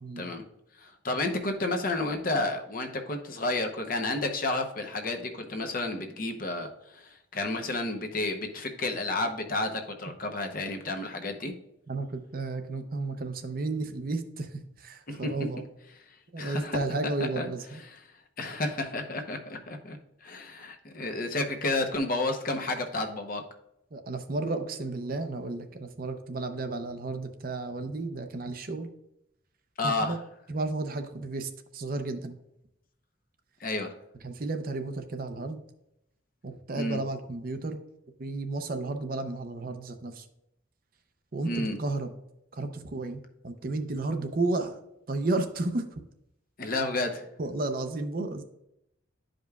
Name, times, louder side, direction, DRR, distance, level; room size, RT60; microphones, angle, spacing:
voice 1, 0.8-11.5 15.1-15.3 16.4-16.8 17.4-17.5 18.4-23.4 29.8-30.1 33.6-33.9 36.7-37.0 41.5-41.8 46.6-47.3, left 2 dB, 45° left, 5 dB, 0.8 m, -31 dB
voice 2, 11.9-15.6 16.3-17.8 23.9-28.9 29.8-30.2 30.5-32.4 34.2-35.6 36.4-37.8 38.2-40.3 41.3-42.1 42.5-44.8 45.1-46.0 47.4-48.4, right 2 dB, 45° right, 8 dB, 0.6 m, -33 dB
11.5 x 5.1 x 2.3 m, 0.83 s
head